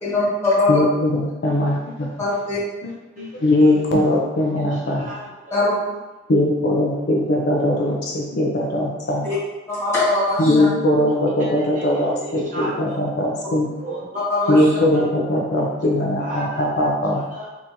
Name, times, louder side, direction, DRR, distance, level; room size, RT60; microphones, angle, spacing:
voice 1, 0.0-0.7 2.2-2.6 5.5-5.8 9.7-10.7 14.3-14.5, left 2 dB, 15° left, -11 dB, 1.5 m, -21 dB
voice 2, 0.7-2.1 2.8-5.1 6.3-9.3 10.4-13.7 14.5-17.2, left 1 dB, 55° left, -1 dB, 0.5 m, -20 dB
voice 3, 4.6-5.7 11.2-13.0 13.8-15.6 16.2-17.5, right 2 dB, 40° right, -5 dB, 0.7 m, -35 dB
3.5 x 2.9 x 2.6 m, 1.1 s
head